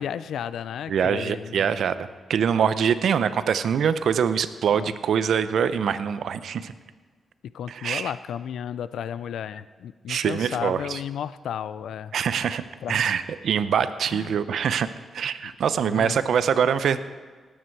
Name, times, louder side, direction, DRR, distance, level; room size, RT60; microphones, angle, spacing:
voice 1, 0.0-1.7 4.7-4.9 7.5-12.5 12.8-13.2 14.1-14.4 15.8-16.2, left 9 dB, 85° left, 15 dB, 0.4 m, -33 dB
voice 2, 0.9-6.7 7.7-8.1 10.1-11.0 12.1-12.6 12.9-14.9 15.1-17.0, right 7 dB, 75° right, 13 dB, 0.6 m, -24 dB
19.0 x 8.8 x 4.6 m, 1.4 s
cardioid pair, 80°, 0 cm